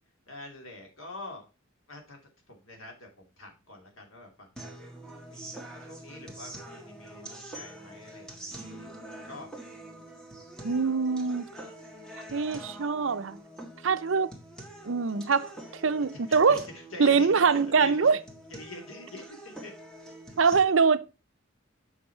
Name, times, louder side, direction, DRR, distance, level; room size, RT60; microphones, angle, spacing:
voice 1, 0.3-1.4 1.9-2.2 2.5-4.8 5.3-8.9 9.2-9.5 16.3-16.6 16.9-18.1 18.5-19.7 20.5-20.7, left 2 dB, 80° left, 2.6 m, -45 dB
sound 1, 4.6-20.6, right 1 dB, 5° left, 1.6 m, -45 dB
voice 2, 10.6-11.5 12.3-13.4 13.8-14.3 14.9-16.6 17.0-18.2 20.4-21.1, right 5 dB, 70° right, 0.6 m, -24 dB
7.5 x 6.0 x 4.4 m
head